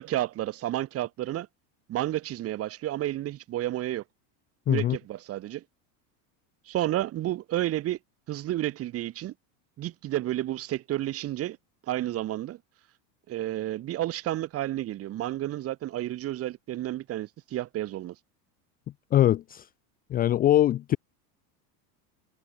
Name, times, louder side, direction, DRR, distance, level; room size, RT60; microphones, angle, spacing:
voice 1, 0.0-1.5 1.9-4.0 4.7-5.6 6.7-8.0 8.3-9.3 9.8-11.6 11.9-12.6 13.3-18.1, right 14 dB, 30° right, 4.2 m, -31 dB
voice 2, 4.7-5.0 19.1-19.7 20.1-21.0, left 12 dB, 20° left, 0.8 m, -22 dB
supercardioid pair, 170°, 47 cm